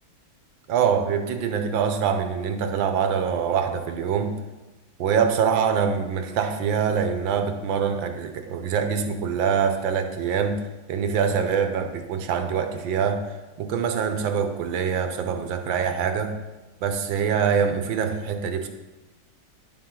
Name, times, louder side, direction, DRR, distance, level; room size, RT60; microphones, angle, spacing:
voice 1, 0.7-4.3 5.0-10.6 10.9-16.4 16.8-18.7, right 7 dB, 80° right, 6 dB, 1.5 m, -24 dB
10.5 x 7.1 x 3.8 m, 1.1 s
omnidirectional pair, 2.1 m